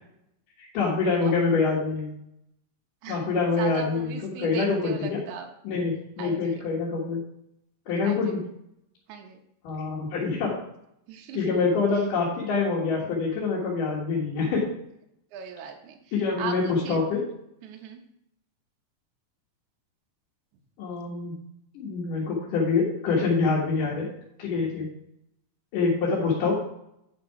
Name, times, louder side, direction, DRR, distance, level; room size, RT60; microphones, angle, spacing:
voice 1, 0.7-2.1 3.1-5.2 5.6-7.2 7.9-8.4 9.6-10.5 11.3-14.6 16.1-17.2 20.8-21.4 21.7-24.1 24.4-24.9 25.7-26.5, left 4 dB, 75° left, -6 dB, 3.0 m, -25 dB
voice 2, 3.6-5.5 6.2-6.7 8.0-8.4 9.1-9.4 11.1-11.5 15.3-16.0 16.4-17.0 17.6-18.0, right 6 dB, 70° right, 3 dB, 2.2 m, -38 dB
9.1 x 6.0 x 4.7 m, 0.76 s
omnidirectional pair, 3.9 m